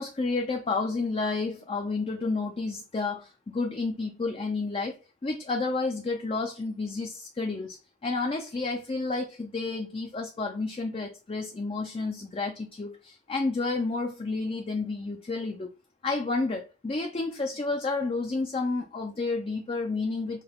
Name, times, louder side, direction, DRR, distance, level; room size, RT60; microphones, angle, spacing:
voice 1, 0.0-15.7 16.0-20.4, left 3 dB, 30° left, 0.4 m, -30 dB
5.6 x 2.3 x 3.4 m
head